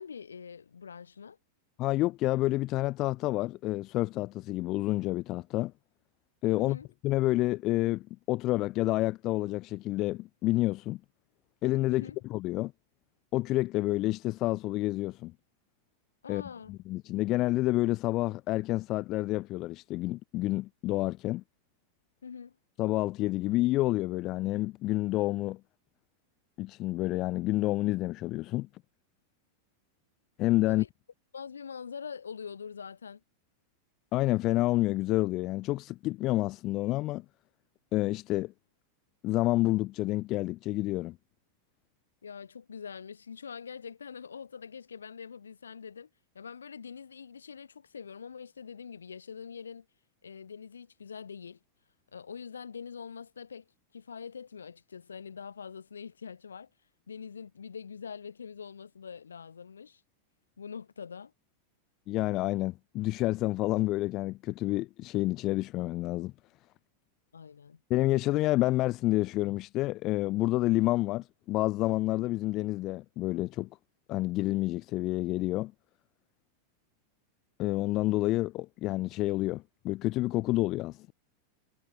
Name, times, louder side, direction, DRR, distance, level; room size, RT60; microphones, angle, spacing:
voice 1, 0.0-1.4 6.5-6.9 11.9-12.2 16.2-16.7 22.2-22.5 30.7-30.9 31.3-33.2 42.2-46.1 46.3-49.9 50.2-51.6 52.1-53.7 53.9-56.7 57.1-60.0 60.6-61.3 67.3-67.8, left 6 dB, 70° left, 6.3 m, -44 dB
voice 2, 1.8-5.7 6.4-6.8 7.0-11.0 11.6-12.7 13.3-15.3 16.3-16.4 16.7-21.4 22.8-25.6 26.6-28.7 30.4-30.8 34.1-37.2 37.9-38.5 39.2-41.2 62.1-66.3 67.9-73.7 74.1-75.7 77.6-81.1, left 18 dB, 35° left, 3.4 m, -29 dB
figure-of-eight pair, 90°, 0 cm